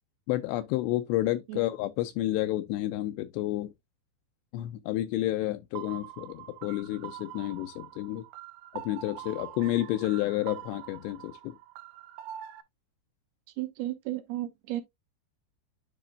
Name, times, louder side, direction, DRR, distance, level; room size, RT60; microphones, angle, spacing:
voice 1, 0.3-3.7 4.5-8.3 8.7-11.6, left 15 dB, 80° left, 2.6 m, -30 dB
sound 1, 5.8-12.6, right 12 dB, 90° right, 3.1 m, -44 dB
voice 2, 13.6-14.8, right 15 dB, 75° right, 2.4 m, -34 dB
10.0 x 4.0 x 2.4 m
omnidirectional pair, 5.3 m